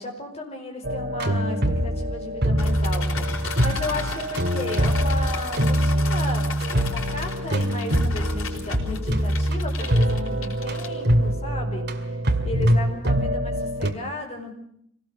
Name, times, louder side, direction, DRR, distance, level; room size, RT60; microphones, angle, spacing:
voice 1, 0.0-6.5 6.7-12.2 12.4-14.5, left 2 dB, 30° left, 1 dB, 5.2 m, -34 dB
sound 1, 0.8-13.9, equal, 55° right, 2.1 m, -24 dB
sound 2, 2.6-11.3, left 5 dB, 90° left, 4.5 m, -36 dB
25.0 x 18.0 x 6.9 m, 0.69 s
head